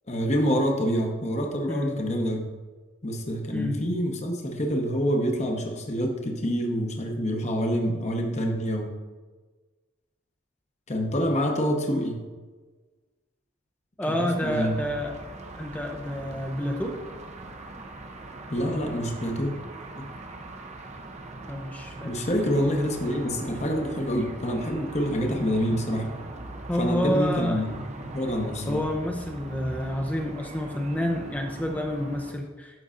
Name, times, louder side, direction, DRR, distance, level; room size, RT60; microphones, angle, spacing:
voice 1, 0.1-2.4 3.0-8.9 10.9-12.2 14.1-14.7 18.5-19.5 20.0-20.1 22.0-26.1 26.8-27.7 28.0-28.9, equal, 35° left, 2 dB, 0.9 m, -27 dB
voice 2, 1.7-2.0 3.5-3.8 14.0-15.2 15.5-17.0 21.5-22.2 26.7-27.6 28.6-32.8, left 1 dB, 5° left, 2 dB, 0.5 m, -29 dB
sound 1, 14.3-32.3, right 2 dB, 35° right, 0.6 m, -41 dB
12.0 x 5.4 x 2.5 m, 1.3 s
head